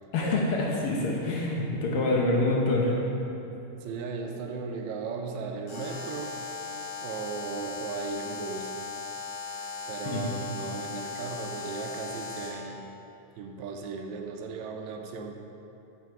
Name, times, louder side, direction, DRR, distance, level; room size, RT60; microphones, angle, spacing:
voice 1, 0.1-3.0 10.1-10.2, left 2 dB, 65° left, -3 dB, 1.4 m, -26 dB
voice 2, 3.8-6.4 7.0-8.7 9.9-12.8 13.4-15.3, right 4 dB, 80° right, 3 dB, 1.7 m, -36 dB
Alarm, 5.7-12.7, left 4 dB, 50° left, 2.2 m, -38 dB
7.6 x 6.0 x 4.5 m, 2.8 s
omnidirectional pair, 3.5 m